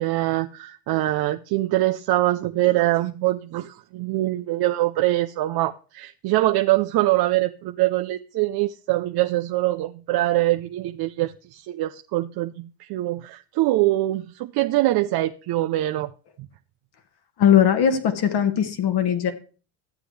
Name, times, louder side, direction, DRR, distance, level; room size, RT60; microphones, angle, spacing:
voice 1, 0.0-16.1, right 16 dB, 55° right, 0.6 m, -23 dB
voice 2, 17.4-19.3, left 9 dB, 55° left, 1.6 m, -19 dB
13.0 x 7.7 x 3.3 m
supercardioid pair, 85°, 46 cm